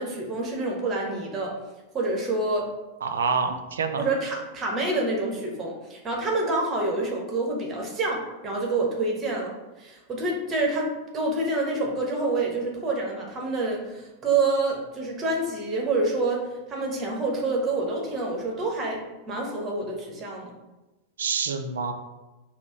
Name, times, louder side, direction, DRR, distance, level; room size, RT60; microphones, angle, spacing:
voice 1, 0.0-1.5 1.9-2.7 4.0-10.9 11.1-16.4 16.7-19.0 19.3-20.5, right 2 dB, 25° right, -1 dB, 1.1 m, -27 dB
voice 2, 3.0-4.0 21.2-21.9, right 5 dB, 65° right, 6 dB, 0.5 m, -27 dB
5.8 x 2.1 x 4.4 m, 1.1 s
figure-of-eight pair, 90°, 0 cm